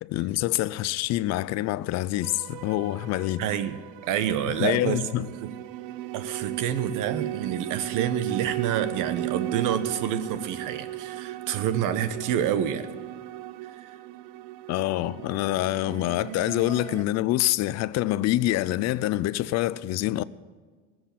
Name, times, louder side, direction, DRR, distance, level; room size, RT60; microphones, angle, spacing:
voice 1, 0.0-3.4 4.5-5.3 14.7-20.2, left 15 dB, 45° left, 0.6 m, -26 dB
sound 1, 2.2-17.0, right 15 dB, 75° right, 0.8 m, -36 dB
voice 2, 3.4-5.0 5.4-5.6 6.1-12.9 13.6-13.9, right 9 dB, 60° right, 1.3 m, -28 dB
19.5 x 7.9 x 9.2 m
cardioid pair, 130°, 36 cm